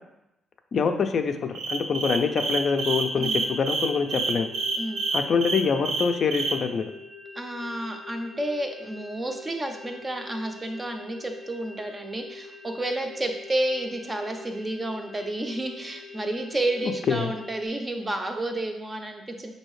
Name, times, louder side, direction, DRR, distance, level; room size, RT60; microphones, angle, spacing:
voice 1, 0.7-4.5 5.1-6.8 17.1-17.3, left 5 dB, 55° left, 7 dB, 0.4 m, -25 dB
sound 1, 1.5-6.6, right 3 dB, 90° right, 0.4 m, -27 dB
sound 2, 2.2-17.7, left 2 dB, 20° left, 0.7 m, -44 dB
voice 2, 7.4-19.5, right 1 dB, 20° right, 4 dB, 0.6 m, -31 dB
5.3 x 2.7 x 3.1 m, 0.88 s
cardioid pair, 90°, 0 cm